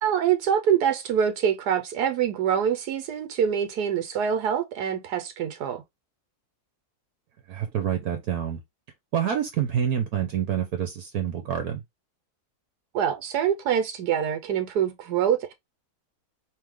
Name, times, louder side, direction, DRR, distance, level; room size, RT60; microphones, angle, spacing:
voice 1, 0.0-5.8 12.9-15.5, right 8 dB, 85° right, 1.3 m, -25 dB
voice 2, 7.5-8.6 9.1-11.8, right 9 dB, 70° right, 1.3 m, -27 dB
3.2 x 3.2 x 3.6 m
omnidirectional pair, 1.7 m